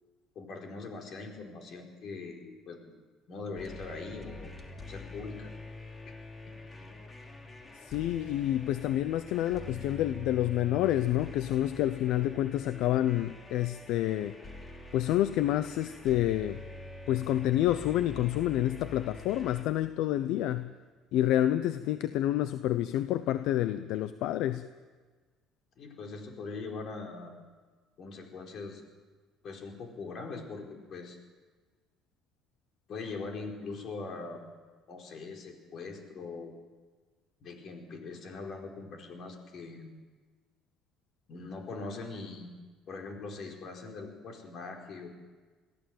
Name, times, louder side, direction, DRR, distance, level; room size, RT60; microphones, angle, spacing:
voice 1, 0.3-3.0 3.3-4.5 4.9-5.5 25.8-27.3 28.0-28.8 29.4-30.6 30.9-31.2 32.9-34.6 34.9-36.5 37.4-39.9 41.3-42.5 42.9-45.1, left 3 dB, 50° left, 2 dB, 4.6 m, -41 dB
sound 1, 3.6-19.6, left 2 dB, 20° left, 2.9 m, -46 dB
voice 2, 7.9-14.3 14.9-16.6 17.1-20.7 21.1-24.6, left 13 dB, 75° left, 12 dB, 0.7 m, -28 dB
22.0 x 15.0 x 7.8 m, 1.4 s
cardioid pair, 110°, 0 cm